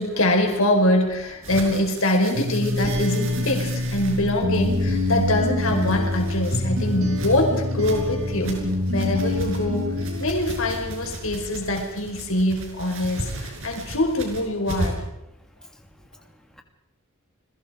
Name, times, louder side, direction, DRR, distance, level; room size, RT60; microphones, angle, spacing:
voice 1, 0.0-8.6 8.9-9.8 10.2-15.0, left 1 dB, 70° left, 2 dB, 4.9 m, -24 dB
sound 1, 1.4-15.1, right 1 dB, 65° right, 6.1 m, -36 dB
sound 2, 2.3-11.1, left 1 dB, 90° right, 4.8 m, -26 dB
voice 2, 15.6-16.6, left 1 dB, 5° left, 3 dB, 2.8 m, -52 dB
29.5 x 22.0 x 5.0 m, 0.91 s
head